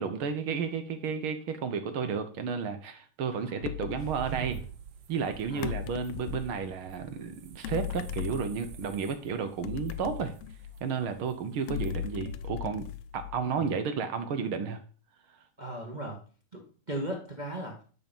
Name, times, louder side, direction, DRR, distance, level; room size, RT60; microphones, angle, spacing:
voice 1, 0.0-4.6 5.1-10.3 10.8-12.8 13.1-14.8, right 6 dB, 60° right, 9 dB, 1.5 m, -32 dB
voice 2, 3.3-3.7 3.9-4.5 5.5-5.7 13.4-13.8 15.6-16.2 16.5-16.6 16.9-17.8, right 1 dB, 20° right, -1 dB, 1.4 m, -38 dB
sound 1, 3.6-4.1 5.6-6.6 7.6-8.9 9.6-11.0 11.7-13.6, left 11 dB, 75° left, 1.5 m, -37 dB
sound 2, 4.0-12.5, right 8 dB, 90° right, 1.0 m, -47 dB
10.5 x 6.6 x 5.4 m, 0.40 s
omnidirectional pair, 3.4 m